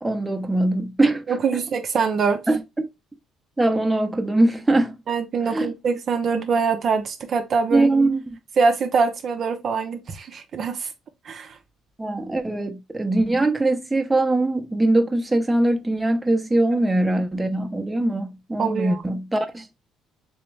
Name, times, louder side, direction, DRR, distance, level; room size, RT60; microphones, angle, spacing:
voice 1, 0.0-1.4 2.5-2.9 3.6-5.0 5.5-5.7 7.7-8.4 12.0-19.7, right 2 dB, 10° right, 0.7 m, -22 dB
voice 2, 1.3-2.4 5.1-7.9 8.6-10.9 11.2-11.6 18.6-19.0, right 5 dB, 45° right, 0.5 m, -23 dB
3.5 x 3.0 x 3.2 m
cardioid pair, 100°, 0 cm